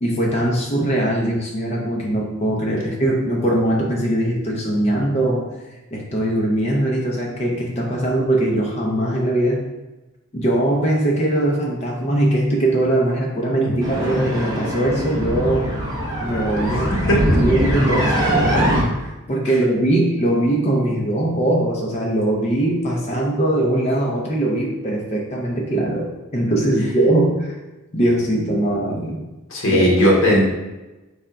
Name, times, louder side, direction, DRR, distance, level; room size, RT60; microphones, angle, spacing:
voice 1, 0.0-5.5 5.9-9.6 10.3-15.7 16.2-16.9 17.4-27.5 27.9-29.1 29.7-29.9, right 1 dB, 30° left, -2 dB, 0.5 m, -21 dB
sound 1, 13.8-18.8, equal, 15° right, 0.6 m, -21 dB
voice 2, 16.7-17.2 18.2-18.3 28.9-29.1 29.5-30.5, equal, 70° left, -3 dB, 0.9 m, -18 dB
3.5 x 2.2 x 3.8 m, 1.1 s
head